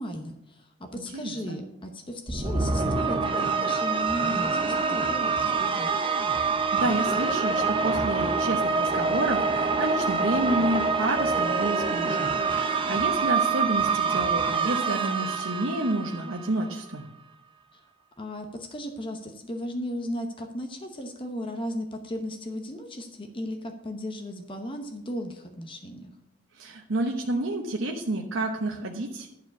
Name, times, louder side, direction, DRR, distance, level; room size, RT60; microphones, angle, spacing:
voice 1, 0.0-6.0 17.7-17.8 18.2-26.1, equal, 25° left, 4 dB, 0.9 m, -36 dB
voice 2, 0.9-1.6 6.5-17.0 26.6-29.3, right 2 dB, 75° right, 0 dB, 1.0 m, -30 dB
sound 1, 2.3-16.7, right 4 dB, 25° right, 0.7 m, -26 dB
11.0 x 4.8 x 7.2 m, 0.84 s
head